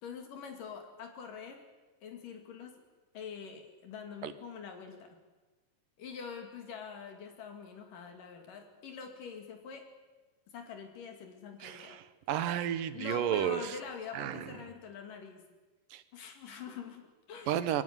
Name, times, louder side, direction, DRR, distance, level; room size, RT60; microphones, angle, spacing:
voice 1, 0.0-1.6 2.0-2.8 3.1-5.2 6.0-9.9 10.5-12.0 12.9-15.5 16.1-17.6, left 6 dB, 75° left, 4 dB, 4.1 m, -45 dB
voice 2, 11.6-13.8 14.1-14.5 15.9-16.0 17.5-17.8, right 10 dB, 80° right, 13 dB, 2.7 m, -32 dB
23.5 x 17.0 x 9.7 m, 1.2 s
omnidirectional pair, 3.9 m